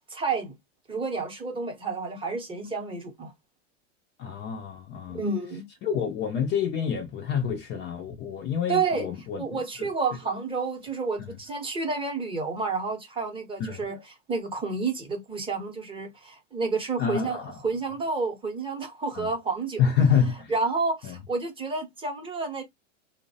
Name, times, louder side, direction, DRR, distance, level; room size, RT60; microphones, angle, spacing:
voice 1, 0.1-0.5 0.9-3.3 5.1-5.7 8.7-9.1 9.4-19.8 20.5-22.6, right 4 dB, 15° right, 0.7 m, -30 dB
voice 2, 4.2-5.2 5.8-9.4 13.6-13.8 17.0-17.6 19.2-19.3 19.8-20.5 21.0-21.2, left 7 dB, 30° left, 0.5 m, -27 dB
2.7 x 2.1 x 2.7 m
hypercardioid pair, 120°, 37 cm